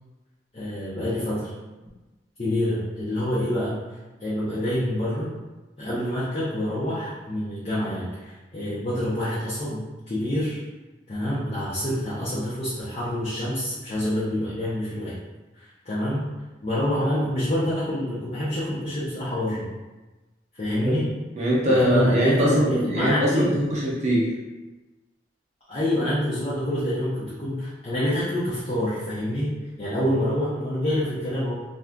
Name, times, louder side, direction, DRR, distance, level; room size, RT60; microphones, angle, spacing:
voice 1, 0.5-1.5 2.4-3.8 4.2-5.3 5.8-10.6 11.1-15.2 15.8-16.2 16.6-19.6 20.5-21.1 21.7-23.5 25.7-29.5 29.8-31.6, left 1 dB, 35° left, -10 dB, 0.6 m, -27 dB
voice 2, 21.4-24.3, equal, 40° right, -5 dB, 0.6 m, -22 dB
2.6 x 2.3 x 3.4 m, 1.1 s
head